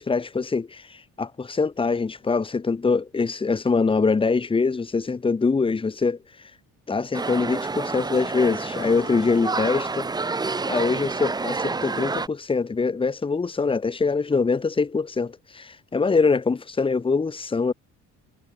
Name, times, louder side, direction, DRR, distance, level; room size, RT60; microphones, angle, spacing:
voice 1, 0.0-6.2 6.9-10.1 10.6-17.7, left 4 dB, 15° left, 4.1 m, -24 dB
sound 1, 7.1-12.3, right 3 dB, 10° right, 1.4 m, -28 dB
cardioid pair, 180°, 32 cm